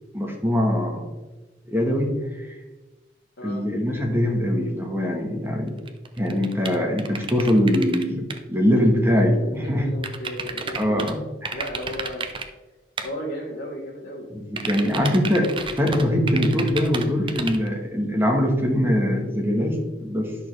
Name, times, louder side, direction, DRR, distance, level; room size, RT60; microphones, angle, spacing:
voice 1, 0.1-1.0 1.7-2.5 3.4-5.8 6.2-9.9 10.8-11.6 14.3-20.4, equal, 15° right, 1 dB, 1.3 m, -22 dB
sound 1, 5.8-8.0 8.3-8.4 10.0-11.1 11.4-12.4 13.0-13.1 14.6-17.7, right 4 dB, 30° right, 0.6 m, -31 dB
voice 2, 9.0-11.0 11.5-12.3 13.0-14.3, equal, 80° left, -3 dB, 1.3 m, -34 dB
10.0 x 6.4 x 3.3 m, 1.1 s
head